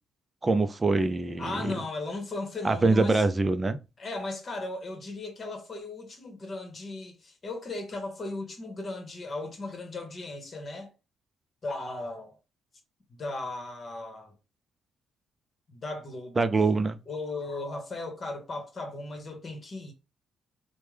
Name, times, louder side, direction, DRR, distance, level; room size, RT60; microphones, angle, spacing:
voice 1, 0.4-1.7 2.6-3.8 16.4-17.0, right 3 dB, 25° right, 0.4 m, -24 dB
voice 2, 1.4-3.2 4.0-10.9 11.6-12.3 13.1-14.3 15.7-16.5 17.1-19.9, left 2 dB, 40° left, 1.1 m, -36 dB
3.3 x 2.1 x 3.3 m
cardioid pair, 90°, 0 cm